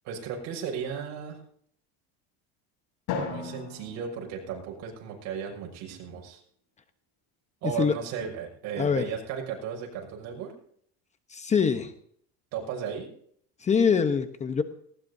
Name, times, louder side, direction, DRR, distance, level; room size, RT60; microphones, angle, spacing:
voice 1, 0.0-1.4 3.3-6.4 7.6-10.5 12.5-13.1, right 7 dB, 60° right, 0 dB, 5.9 m, -35 dB
Drum, 3.1-5.4, left 5 dB, 60° left, 6.7 m, -37 dB
voice 2, 11.3-11.9 13.6-14.6, left 6 dB, 20° left, 9 dB, 1.0 m, -24 dB
19.0 x 18.0 x 2.8 m, 0.63 s
cardioid pair, 135°, 31 cm